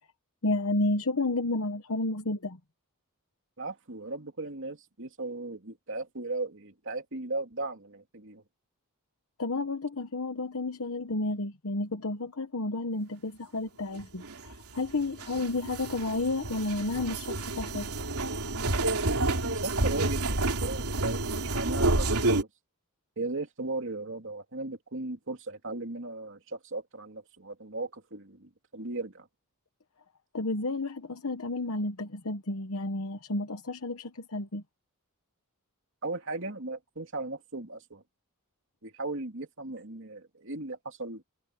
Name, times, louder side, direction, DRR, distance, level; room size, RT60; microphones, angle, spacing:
voice 1, 0.4-2.6 9.4-17.9 30.3-34.6, left 2 dB, 70° left, 1.1 m, -31 dB
voice 2, 3.6-8.4 19.2-22.5 23.2-29.3 36.0-38.0 38.8-41.2, right 2 dB, 60° right, 2.8 m, -37 dB
sound 1, 14.0-22.4, right 2 dB, 85° right, 3.0 m, -29 dB
head